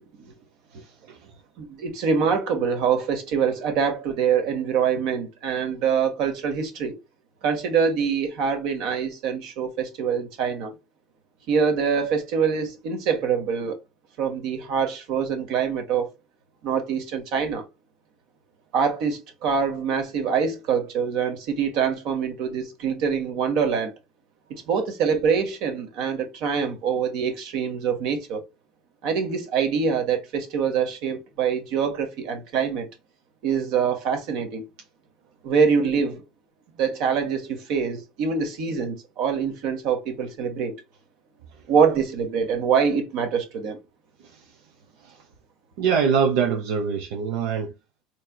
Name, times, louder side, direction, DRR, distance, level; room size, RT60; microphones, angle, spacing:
voice 1, 1.6-7.0 7.4-10.7 11.5-13.8 14.2-16.1 16.6-17.6 18.7-23.9 24.5-28.4 29.0-32.9 33.4-34.7 35.4-36.2 36.8-40.7 41.7-43.8, right 6 dB, 65° right, 1.4 m, -24 dB
voice 2, 45.8-47.7, right 6 dB, 85° right, 0.8 m, -23 dB
4.3 x 3.2 x 2.3 m
cardioid pair, 135°, 0 cm